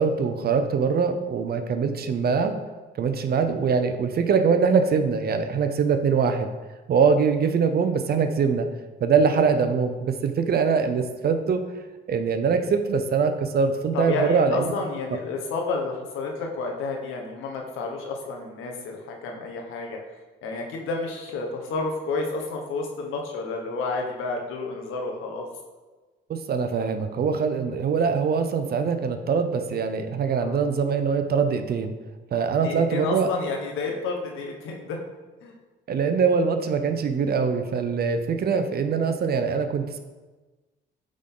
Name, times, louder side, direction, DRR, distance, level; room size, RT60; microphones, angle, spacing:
voice 1, 0.0-2.6 3.0-6.5 6.9-8.7 9.0-11.6 12.1-14.7 26.3-31.9 32.3-33.3 35.9-40.0, right 5 dB, 50° right, 8 dB, 0.7 m, -23 dB
voice 2, 13.9-20.0 20.4-25.4 30.3-30.6 32.6-35.0 35.4-35.6, left 3 dB, 85° left, 1 dB, 1.2 m, -30 dB
8.4 x 3.8 x 3.8 m, 1.2 s
cardioid pair, 90°, 20 cm